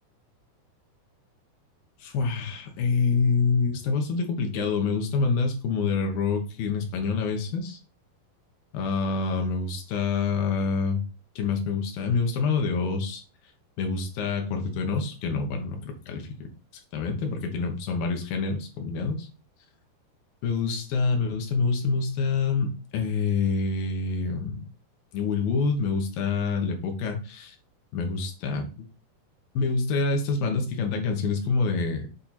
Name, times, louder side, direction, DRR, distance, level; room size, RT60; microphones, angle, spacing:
voice 1, 2.0-7.8 8.7-11.0 11.4-13.2 13.8-16.3 16.9-19.3 20.4-24.7 25.1-27.6 27.9-28.9 29.5-32.1, left 4 dB, 75° left, 4 dB, 3.0 m, -26 dB
8.4 x 3.5 x 4.3 m, 0.34 s
omnidirectional pair, 4.3 m